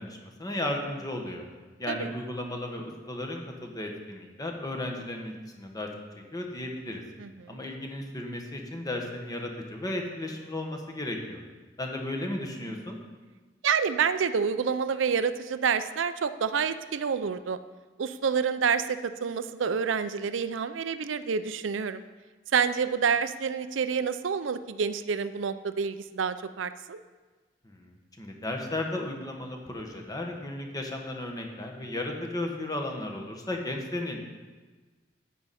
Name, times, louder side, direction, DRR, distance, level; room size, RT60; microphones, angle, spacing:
voice 1, 0.0-1.4 1.8-5.9 6.2-7.0 7.5-11.4 11.8-13.0 27.6-34.2, left 1 dB, 20° left, 2 dB, 1.4 m, -35 dB
voice 2, 7.2-7.6 13.6-17.6 18.0-22.0 22.5-27.0, right 6 dB, 80° right, 12 dB, 0.5 m, -28 dB
11.5 x 9.2 x 4.3 m, 1.3 s
head